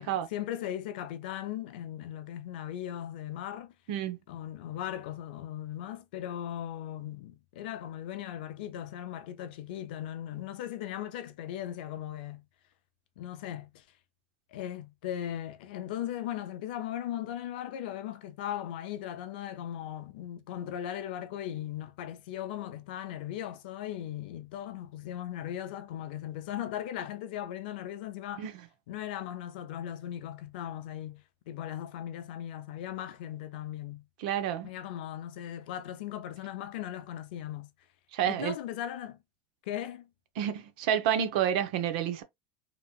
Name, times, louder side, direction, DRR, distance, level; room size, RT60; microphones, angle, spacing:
voice 1, 0.0-3.7 4.3-12.4 13.2-13.8 14.5-28.5 28.9-34.0 34.6-37.7 38.2-39.2 39.7-40.1, left 11 dB, 80° left, 0.5 m, -38 dB
voice 2, 34.2-34.7 38.1-38.5 40.4-42.2, right 9 dB, 70° right, 0.7 m, -29 dB
2.9 x 2.8 x 2.3 m
supercardioid pair, 150°, 5 cm